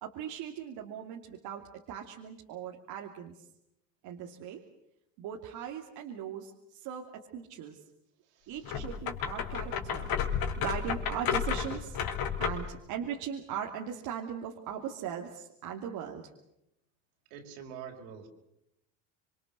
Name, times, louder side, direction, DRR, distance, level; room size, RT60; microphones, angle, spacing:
voice 1, 0.0-3.5 4.0-4.6 5.2-7.8 8.5-10.1 10.6-12.0 12.4-16.3, right 8 dB, 60° right, 1 dB, 2.9 m, -39 dB
sound 1, 8.6-12.7, left 7 dB, 55° left, 4.4 m, -32 dB
voice 2, 17.3-18.3, right 7 dB, 80° right, 3 dB, 5.4 m, -45 dB
27.0 x 24.0 x 6.8 m, 0.82 s
supercardioid pair, 110°, 41 cm